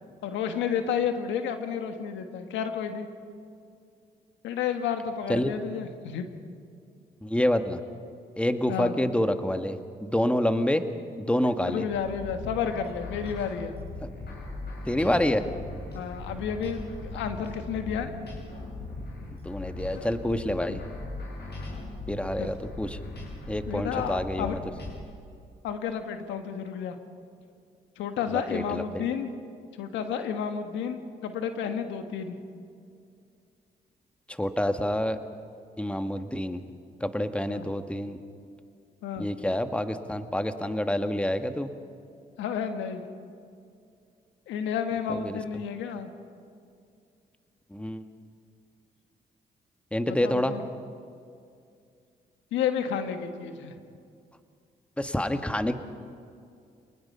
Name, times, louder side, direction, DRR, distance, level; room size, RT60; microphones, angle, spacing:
voice 1, 0.2-3.1 4.4-6.3 8.7-9.0 11.7-13.7 15.9-18.1 19.9-20.3 20.7-20.8 22.4-22.6 23.7-24.6 25.6-26.9 28.0-29.3 29.8-32.3 37.5-37.7 39.0-39.3 42.4-43.0 44.5-46.1 50.1-50.6 52.5-53.7, left 7 dB, 85° left, 7 dB, 1.5 m, -31 dB
voice 2, 7.2-7.8 8.4-10.8 11.2-11.8 14.0-14.1 14.9-15.4 19.4-20.8 22.1-23.0 23.5-24.6 28.3-29.1 34.3-35.2 35.8-36.6 37.0-38.2 39.2-41.7 45.1-45.4 47.7-48.1 49.9-50.5 55.0-55.8, left 1 dB, 5° left, 8 dB, 1.5 m, -27 dB
sound 1, 11.9-25.0, left 2 dB, 60° left, 7.3 m, -39 dB
27.0 x 20.0 x 5.6 m, 2.4 s
supercardioid pair, 55°, 19 cm